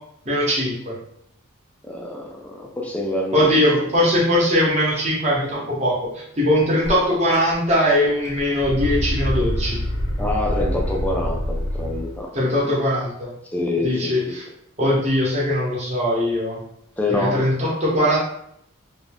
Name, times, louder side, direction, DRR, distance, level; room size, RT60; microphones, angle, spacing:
voice 1, 0.2-0.9 3.3-9.8 12.3-13.3 13.8-14.4 14.8-16.6 17.1-18.2, equal, 30° right, -5 dB, 0.8 m, -20 dB
voice 2, 1.9-4.1 10.2-12.3 13.5-14.3 14.8-14.9 17.0-17.4, left 2 dB, 5° left, -2 dB, 0.3 m, -26 dB
sound 1, 6.8-6.9 7.3-7.9 8.2-12.2, equal, 85° left, 0.7 m, -26 dB
2.5 x 2.2 x 3.3 m, 0.74 s
head